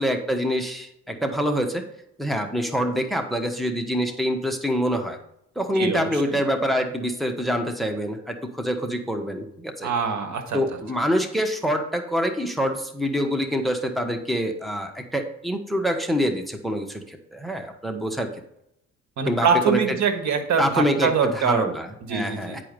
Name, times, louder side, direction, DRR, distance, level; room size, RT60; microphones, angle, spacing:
voice 1, 0.0-1.8 2.2-5.2 5.5-9.9 10.5-18.3 19.3-20.0 20.6-22.6, equal, ahead, 5 dB, 1.2 m, -26 dB
voice 2, 5.7-6.2 9.8-10.6 19.2-21.7 22.1-22.6, right 6 dB, 70° right, 6 dB, 1.6 m, -24 dB
10.0 x 4.8 x 5.2 m, 0.77 s
cardioid pair, 90°, 30 cm